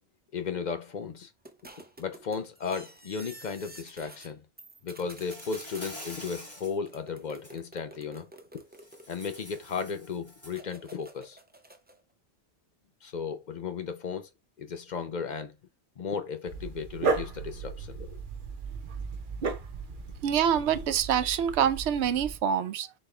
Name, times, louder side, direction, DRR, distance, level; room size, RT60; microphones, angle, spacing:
voice 1, 0.3-1.3 2.0-4.4 4.8-8.3 9.1-11.4 13.0-14.3 14.6-15.5 16.0-18.2, left 5 dB, 50° left, 0.6 m, -35 dB
sound 1, 1.5-4.3 4.6-6.2 6.9-9.8 10.5-12.0, right 1 dB, 15° right, 0.4 m, -50 dB
Insect, 5.0-6.8 7.2-7.5 8.8-10.7, equal, 15° left, 1.5 m, -46 dB
Dog, 16.5-22.4, right 4 dB, 55° right, 0.9 m, -35 dB
voice 2, 20.2-22.9, right 8 dB, 85° right, 0.9 m, -26 dB
4.2 x 3.5 x 3.2 m
omnidirectional pair, 1.1 m